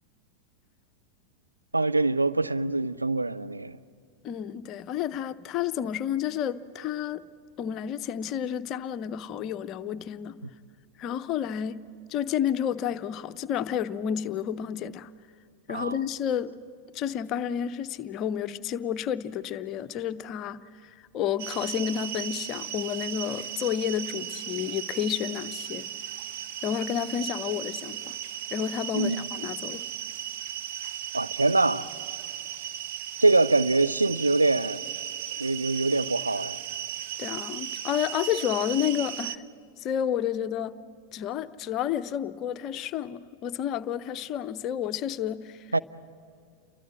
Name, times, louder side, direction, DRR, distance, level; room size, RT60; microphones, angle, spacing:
voice 1, 1.7-3.8 15.7-16.0 28.9-29.3 31.1-31.9 33.2-34.8 35.4-36.6 45.7-45.8, right 2 dB, 80° right, 0.6 m, -24 dB
voice 2, 4.2-7.2 7.6-10.4 11.0-11.8 12.1-15.1 15.7-16.5 16.9-20.6 21.1-25.9 26.6-28.2 28.5-29.8 37.2-39.4 39.8-40.8 41.1-45.7, left 9 dB, 35° left, 0.8 m, -30 dB
sound 1, 21.4-39.4, right 10 dB, 50° right, 0.9 m, -36 dB
29.0 x 23.5 x 7.7 m
figure-of-eight pair, 90°, 0 cm